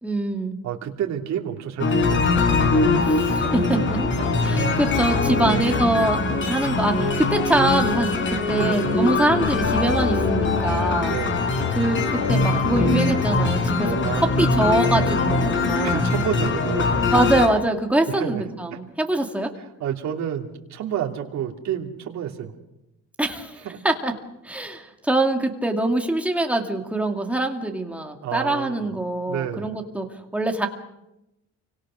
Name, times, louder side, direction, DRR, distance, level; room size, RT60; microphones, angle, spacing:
voice 1, 0.0-0.6 3.1-4.0 4.4-6.2 6.5-8.1 8.5-11.2 11.7-16.1 17.1-19.5 23.2-24.1 24.4-30.1 30.3-30.7, right 2 dB, 5° right, 3 dB, 2.3 m, -24 dB
voice 2, 0.6-2.5 3.4-3.5 5.4-5.7 8.5-9.0 11.0-11.5 14.0-14.4 15.8-17.0 18.1-18.4 18.7-18.8 19.8-22.5 23.6-23.8 28.2-28.9 29.3-29.7, right 10 dB, 65° right, 2 dB, 3.0 m, -29 dB
sound 1, 1.8-17.5, left 3 dB, 40° left, 4.2 m, -22 dB
29.0 x 25.0 x 6.4 m, 0.90 s
cardioid pair, 175°, 30 cm